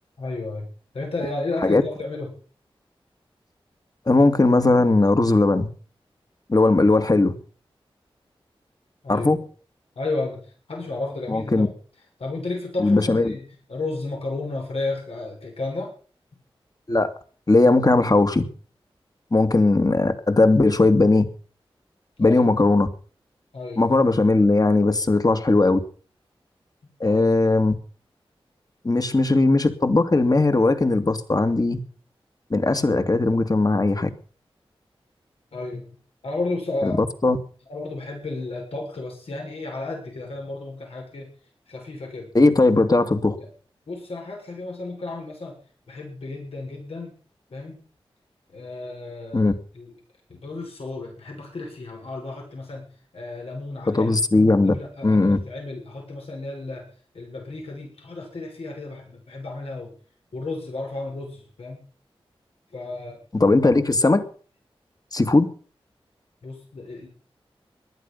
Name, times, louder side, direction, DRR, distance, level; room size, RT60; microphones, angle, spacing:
voice 1, 0.2-0.7 0.9-2.3 9.0-9.3 10.0-10.4 10.7-11.7 12.2-13.4 13.7-15.9 22.2-22.4 23.5-23.8 27.0-27.2 32.8-33.0 35.5-35.9 36.2-37.0 37.7-41.3 41.7-42.3 43.4-43.5 43.9-45.5 45.9-47.1 47.5-47.8 48.5-49.9 50.3-52.8 53.1-54.2 54.7-56.8 57.1-59.9 60.3-61.8 62.7-63.2 66.4-67.1, left 2 dB, 80° left, 0 dB, 6.8 m, -32 dB
voice 2, 4.1-5.7 6.5-7.3 9.1-9.4 11.3-11.7 12.8-13.4 16.9-17.1 17.5-18.4 19.3-21.2 22.2-22.9 23.8-25.8 27.0-27.7 28.8-31.8 32.5-34.1 36.8-37.4 42.3-43.4 49.3-49.5 53.9-54.7 55.0-55.4 63.3-64.2 65.1-65.5, left 2 dB, 40° left, 8 dB, 2.5 m, -18 dB
19.0 x 12.0 x 5.7 m, 0.42 s
cardioid pair, 45°, 10 cm